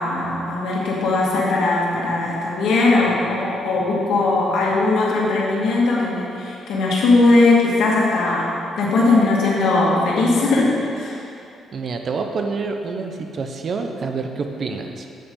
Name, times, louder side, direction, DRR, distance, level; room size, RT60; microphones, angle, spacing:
voice 1, 0.0-11.2, left 3 dB, 80° left, -4 dB, 1.9 m, -19 dB
voice 2, 11.7-15.1, right 4 dB, 50° right, 5 dB, 0.8 m, -27 dB
8.5 x 8.3 x 3.8 m, 2.6 s
cardioid pair, 90°, 0 cm